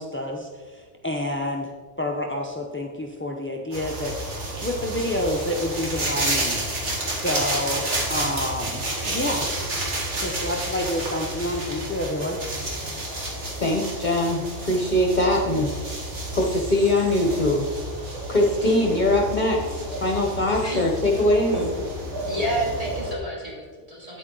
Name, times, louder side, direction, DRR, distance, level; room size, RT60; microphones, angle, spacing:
voice 1, 0.0-6.6 7.0-9.5 10.2-12.4, left 1 dB, 20° left, 1 dB, 0.3 m, -29 dB
sound 1, 3.7-23.1, right 1 dB, 65° right, 1.9 m, -30 dB
voice 2, 13.6-15.7 16.3-17.6 18.3-21.5, left 1 dB, 40° left, 1 dB, 0.9 m, -22 dB
voice 3, 22.3-24.2, right 1 dB, 30° right, -5 dB, 3.0 m, -29 dB
8.5 x 8.3 x 3.8 m, 1.5 s
omnidirectional pair, 1.3 m